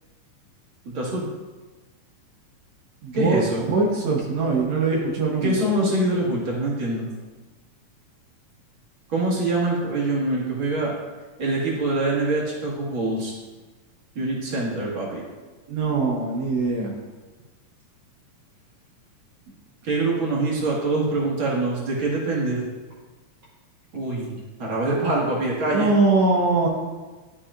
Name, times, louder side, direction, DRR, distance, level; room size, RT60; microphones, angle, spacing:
voice 1, 0.9-1.3 3.1-3.6 5.4-7.0 9.1-10.9 11.4-13.3 14.2-15.2 19.8-22.6 23.9-25.9, right 2 dB, 45° right, -5 dB, 2.3 m, -24 dB
voice 2, 3.0-3.4 3.7-5.7 15.7-16.9 25.7-26.7, right 3 dB, 70° right, -2 dB, 2.1 m, -22 dB
12.0 x 5.5 x 2.5 m, 1.3 s
omnidirectional pair, 3.4 m